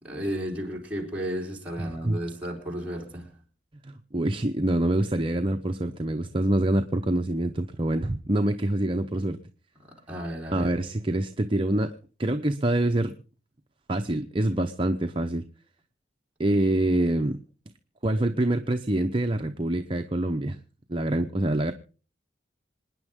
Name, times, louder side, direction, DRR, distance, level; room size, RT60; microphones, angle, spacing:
voice 1, 0.0-3.3 9.8-10.7, equal, 10° right, 4.2 m, -33 dB
voice 2, 1.8-2.2 3.8-9.4 10.5-11.9 12.2-13.1 13.9-15.5 16.4-17.4 18.0-20.6 20.9-21.7, right 1 dB, 30° right, 0.8 m, -25 dB
27.0 x 10.0 x 3.7 m
head